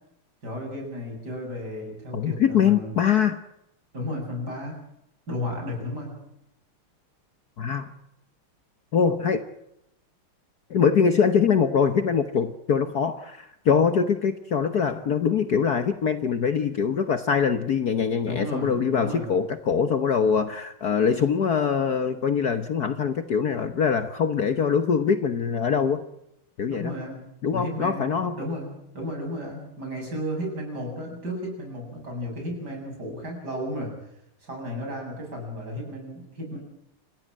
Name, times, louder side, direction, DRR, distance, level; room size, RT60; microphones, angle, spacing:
voice 1, 0.4-3.0 3.9-4.8 5.3-6.2 18.2-19.3 26.7-34.0 34.4-36.6, equal, 45° right, 1 dB, 8.6 m, -33 dB
voice 2, 2.1-3.4 7.6-7.9 8.9-9.4 10.7-26.0 26.6-26.9 27.4-28.4, left 6 dB, 50° left, 9 dB, 1.5 m, -23 dB
29.0 x 15.5 x 7.5 m, 0.82 s
omnidirectional pair, 2.4 m